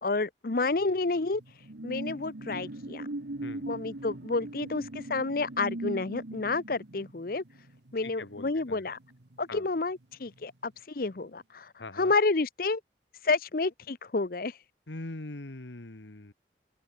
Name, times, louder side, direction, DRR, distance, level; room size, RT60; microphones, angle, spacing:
voice 1, 0.0-1.4 1.8-3.1 3.7-7.4 7.9-9.0 9.4-11.7 12.0-12.8 13.2-14.6, left 3 dB, 55° left, 0.8 m, -30 dB
sound 1, 0.8-9.8 10.1-10.4, right 1 dB, 75° right, 1.4 m, -40 dB
voice 2, 8.0-8.9 9.5-9.7 11.8-12.1 14.9-16.3, left 2 dB, 80° left, 1.7 m, -42 dB
open air
head